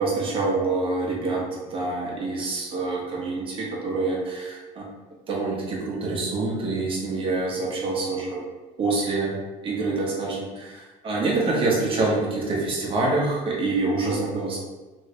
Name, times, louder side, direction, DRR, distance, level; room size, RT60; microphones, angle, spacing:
voice 1, 0.0-4.9 5.3-8.4 8.8-9.3 9.6-14.6, right 3 dB, 35° right, -3 dB, 0.9 m, -26 dB
3.1 x 2.7 x 2.8 m, 1.2 s
cardioid pair, 130°, 16 cm